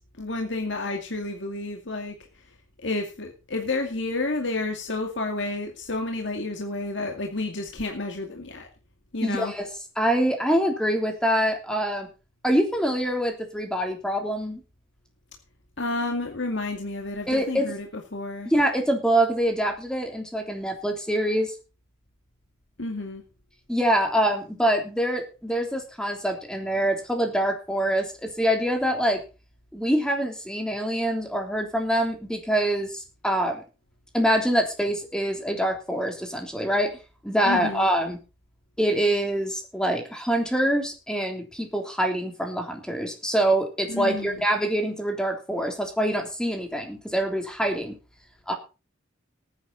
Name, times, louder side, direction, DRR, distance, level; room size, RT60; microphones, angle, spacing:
voice 1, 0.0-2.1 2.8-8.7 9.1-9.5 15.8-17.9 18.1-18.5 22.8-23.2 37.4-37.9 43.9-44.4, left 2 dB, 65° left, 2 dB, 2.3 m, -30 dB
voice 2, 9.2-9.6 10.0-12.1 12.4-14.6 17.3-17.7 18.4-21.5 23.7-29.2 29.7-33.6 34.1-36.9 37.2-38.2 38.8-47.9 48.5-48.6, right 1 dB, 5° left, 3 dB, 3.2 m, -25 dB
18.0 x 10.0 x 4.1 m, 0.32 s
head